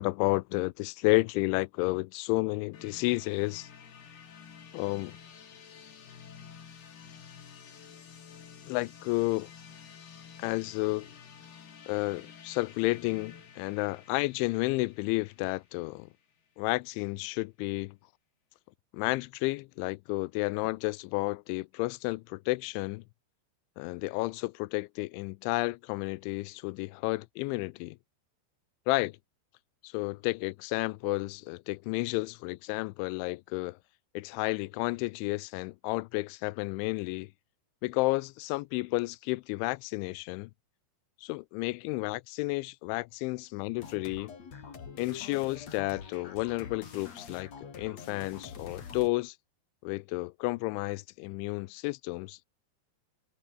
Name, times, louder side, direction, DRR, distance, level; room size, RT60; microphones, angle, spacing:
voice 1, 0.0-3.7 4.7-5.2 8.7-9.5 10.4-11.1 11.9-16.1 16.6-18.0 18.9-23.0 23.8-28.0 28.9-29.2 29.8-33.8 34.2-37.3 37.8-40.5 41.2-44.3 45.0-47.5 47.8-49.4 49.8-52.5, left 23 dB, 85° left, 2.9 m, -31 dB
sound 1, 2.7-16.5, left 7 dB, 60° left, 5.5 m, -51 dB
sound 2, 43.8-49.1, left 6 dB, 40° left, 3.9 m, -45 dB
omnidirectional pair, 5.4 m